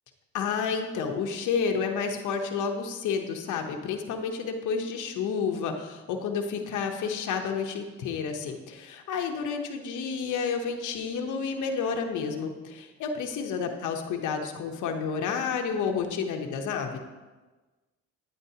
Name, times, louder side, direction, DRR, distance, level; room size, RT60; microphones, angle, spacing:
voice 1, 0.3-17.0, left 6 dB, 80° left, 4 dB, 0.9 m, -30 dB
9.3 x 9.1 x 2.8 m, 1.2 s
cardioid pair, 90°, 30 cm